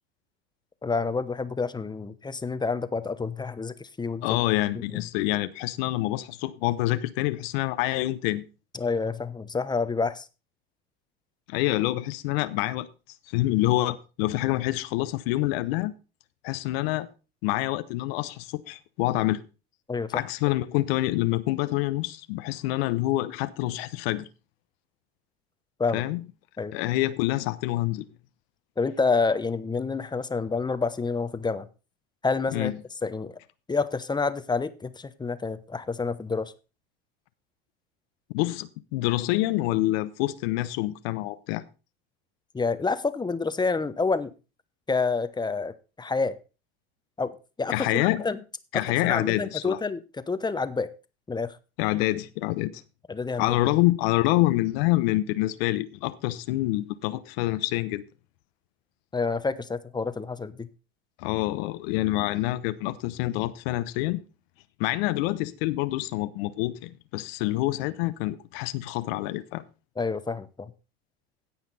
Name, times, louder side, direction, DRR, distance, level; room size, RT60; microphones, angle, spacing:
voice 1, 0.8-4.4 4.9-5.0 8.7-10.3 19.9-20.2 25.8-26.0 26.6-26.7 28.8-31.7 32.2-32.7 33.0-33.4 33.7-36.5 42.5-44.3 44.9-46.4 47.2-48.4 48.7-50.0 50.3-50.9 51.3-51.6 53.1-53.5 59.1-60.7 70.0-70.7, left 4 dB, 15° left, 0.9 m, -28 dB
voice 2, 4.2-8.4 11.5-12.9 13.3-15.9 16.4-17.1 17.4-19.4 20.1-24.3 25.9-26.2 26.7-28.0 32.5-32.7 38.3-41.6 47.7-48.2 48.7-49.8 51.8-52.8 53.4-58.0 61.2-64.2 64.8-69.6, left 17 dB, 75° left, 0.8 m, -26 dB
16.5 x 5.8 x 4.1 m
supercardioid pair, 100°, 30 cm